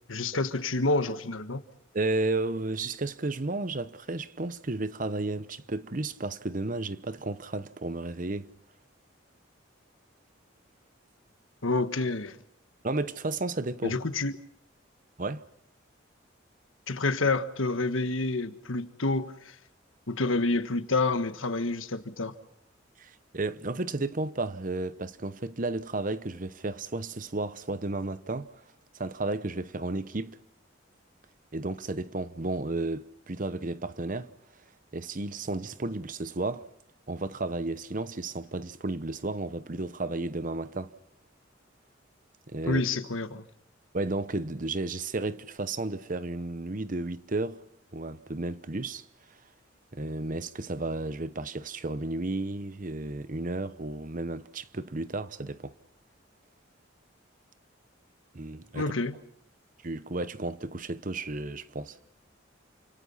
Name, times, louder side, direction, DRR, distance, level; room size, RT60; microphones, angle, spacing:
voice 1, 0.1-1.6 11.6-12.4 13.8-14.3 16.9-19.5 20.1-22.3 42.6-43.4 58.7-59.2, left 3 dB, 85° left, 1.5 m, -28 dB
voice 2, 1.9-8.5 12.8-14.0 15.2-15.4 23.0-28.6 28.9-30.4 31.5-34.3 34.9-36.7 37.1-40.9 42.5-42.8 43.9-47.6 47.9-49.0 49.9-55.7 58.3-58.9 59.8-62.0, right 2 dB, 40° right, 0.9 m, -33 dB
28.5 x 26.0 x 5.6 m
head